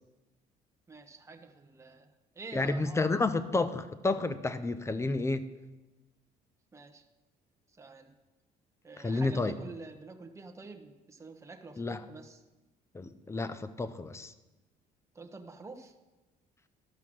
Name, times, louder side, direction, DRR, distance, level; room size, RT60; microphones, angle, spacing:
voice 1, 0.9-2.1 2.3-3.1 6.7-7.0 7.7-8.1 8.8-12.4 15.1-15.9, right 3 dB, 15° right, 3 dB, 1.1 m, -47 dB
voice 2, 2.5-5.5 9.0-9.6 11.8-12.0 12.9-14.3, left 3 dB, 15° left, 13 dB, 0.6 m, -30 dB
12.5 x 5.7 x 6.2 m, 1.1 s
cardioid pair, 110°, 17 cm